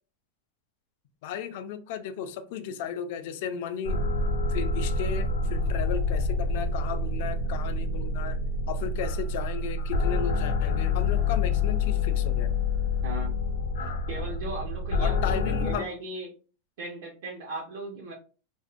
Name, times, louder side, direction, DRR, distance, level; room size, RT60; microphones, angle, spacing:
voice 1, 1.2-4.0 4.5-8.4 8.7-12.5 15.0-15.9, left 7 dB, 50° left, 0.3 m, -35 dB
sound 1, 3.8-15.8, left 3 dB, 85° left, 0.6 m, -27 dB
voice 2, 13.0-13.3 14.1-15.2 15.5-16.3 16.8-18.1, right 2 dB, 65° right, 0.7 m, -37 dB
2.5 x 2.0 x 2.4 m
supercardioid pair, 170°, 0 cm